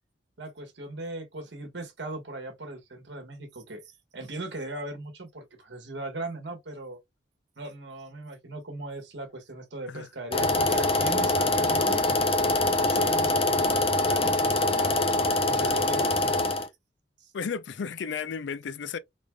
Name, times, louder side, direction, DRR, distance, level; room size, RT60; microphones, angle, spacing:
voice 1, 0.4-3.8 4.1-7.0 7.6-12.1 12.9-16.2 17.2-17.3, right 2 dB, 70° right, 1.2 m, -39 dB
sound 1, 10.3-16.7, left 2 dB, 30° left, 0.6 m, -24 dB
voice 2, 17.3-19.0, left 6 dB, 75° left, 0.4 m, -34 dB
3.9 x 3.3 x 2.2 m
head